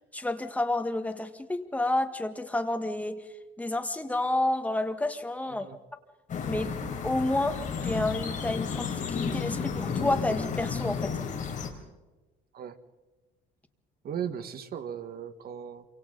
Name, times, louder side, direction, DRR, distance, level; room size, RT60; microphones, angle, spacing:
voice 1, 0.1-3.2 3.6-5.7 6.5-6.7 7.0-11.2, left 2 dB, 5° left, 7 dB, 1.6 m, -30 dB
sound 1, 6.3-11.7, left 6 dB, 40° left, 3.8 m, -32 dB
voice 2, 14.0-15.9, right 8 dB, 50° right, 9 dB, 1.7 m, -37 dB
28.0 x 25.0 x 4.0 m, 1.1 s
cardioid pair, 135°, 20 cm